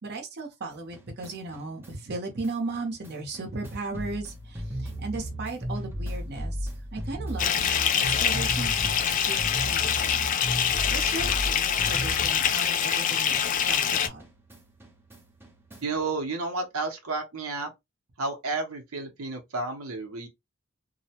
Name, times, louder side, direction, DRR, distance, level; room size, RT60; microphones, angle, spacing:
voice 1, 0.0-10.3 10.9-13.4 13.7-14.2, right 3 dB, 50° right, 0.8 m, -36 dB
sound 1, 0.7-13.0 13.3-16.1, equal, 10° right, 0.6 m, -36 dB
Bathtub (filling or washing) / Fill (with liquid), 7.4-14.1, left 8 dB, 40° left, 0.3 m, -25 dB
voice 2, 15.8-17.7 18.2-20.3, right 3 dB, 85° right, 0.8 m, -31 dB
2.6 x 2.0 x 2.8 m
head